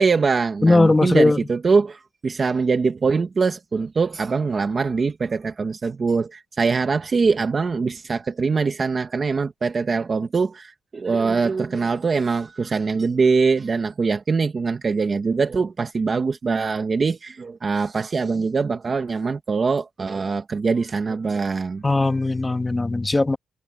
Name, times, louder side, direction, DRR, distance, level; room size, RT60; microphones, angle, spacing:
voice 1, 0.0-21.8, right 4 dB, 25° right, 1.1 m, -23 dB
voice 2, 0.6-1.5 21.8-23.4, left 2 dB, 10° left, 2.5 m, -18 dB
cardioid pair, 175°, 0 cm